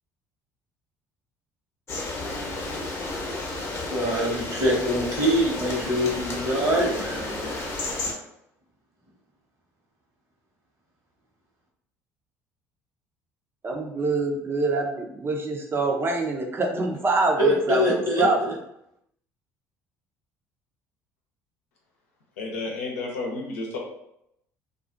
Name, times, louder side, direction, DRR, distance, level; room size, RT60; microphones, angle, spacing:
sound 1, 1.9-8.1, left 2 dB, 35° left, 0.8 m, -32 dB
voice 1, 3.7-7.6 17.4-18.5, equal, 50° right, -3 dB, 1.1 m, -25 dB
voice 2, 13.6-18.4, right 3 dB, 30° right, 1 dB, 0.6 m, -25 dB
voice 3, 22.4-23.8, left 3 dB, 90° left, -1 dB, 0.7 m, -31 dB
2.4 x 2.3 x 2.4 m, 0.78 s
hypercardioid pair, 70°, 8 cm